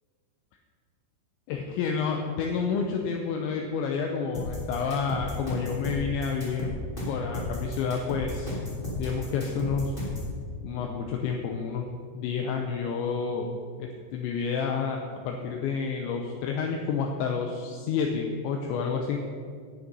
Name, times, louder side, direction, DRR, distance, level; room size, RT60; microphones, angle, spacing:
voice 1, 1.5-6.7 7.1-8.6 9.0-10.0 10.6-11.9 12.1-13.5 13.8-15.0 15.2-19.2, left 5 dB, 80° left, 2 dB, 2.8 m, -29 dB
sound 1, 4.3-10.3, left 1 dB, 20° left, 1.6 m, -34 dB
9.5 x 8.8 x 5.3 m, 2.2 s
omnidirectional pair, 5.5 m